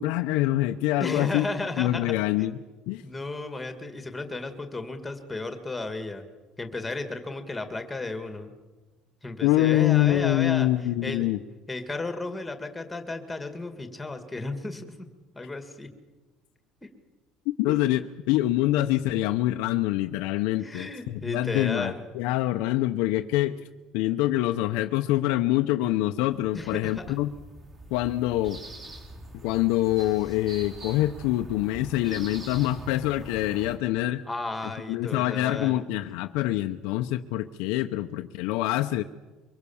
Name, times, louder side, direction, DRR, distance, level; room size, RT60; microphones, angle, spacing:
voice 1, 0.0-1.5 1.8-2.6 2.9-3.0 9.4-11.4 17.6-23.6 23.9-27.3 27.9-28.6 29.4-34.2 34.9-39.0, left 15 dB, 80° left, 6 dB, 0.8 m, -25 dB
voice 2, 1.0-2.5 3.0-6.3 6.6-8.5 9.2-10.7 11.0-11.3 11.7-15.1 15.3-15.9 16.8-16.9 17.7-17.8 20.6-22.0 26.5-27.0 34.3-35.8, left 2 dB, 10° left, 7 dB, 2.0 m, -34 dB
sound 1, 26.3-33.8, right 1 dB, 30° right, 4.8 m, -44 dB
24.0 x 24.0 x 7.1 m, 1.3 s
cardioid pair, 170°, 0 cm